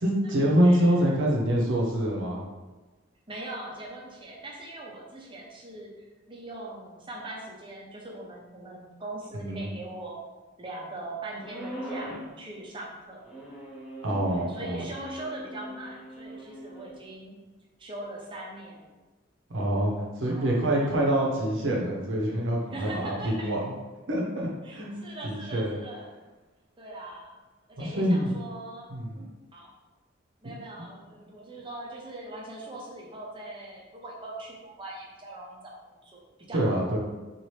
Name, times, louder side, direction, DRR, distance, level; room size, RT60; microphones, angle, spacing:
voice 1, 0.0-2.4 9.3-9.7 14.0-14.8 19.5-23.7 24.1-24.9 25.2-25.8 27.8-28.3 28.9-29.2 36.5-37.0, right 1 dB, 65° right, -2 dB, 0.7 m, -26 dB
voice 2, 0.6-0.9 3.3-5.9 6.3-10.3 10.6-13.2 14.3-17.4 17.8-18.9 19.7-19.8 20.2-21.1 22.7-23.5 24.6-26.1 26.8-27.4 27.7-29.7 30.4-36.7, right 2 dB, 25° right, -3 dB, 0.6 m, -41 dB
sound 1, 11.4-12.3 13.2-16.9, equal, 5° right, 1.0 m, -41 dB
2.9 x 2.5 x 3.1 m, 1.2 s
head